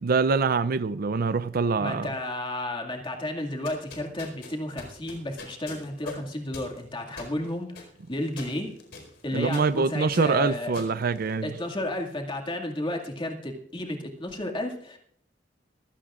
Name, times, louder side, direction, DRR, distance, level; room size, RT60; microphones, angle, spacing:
voice 1, 0.0-2.1 9.3-11.5, right 4 dB, 55° right, 0.5 m, -24 dB
voice 2, 1.8-8.7 9.2-10.7 11.4-15.0, left 1 dB, 30° left, 2.1 m, -32 dB
sound 1, 3.5-11.8, left 2 dB, 70° left, 4.6 m, -44 dB
23.5 x 16.0 x 2.5 m
head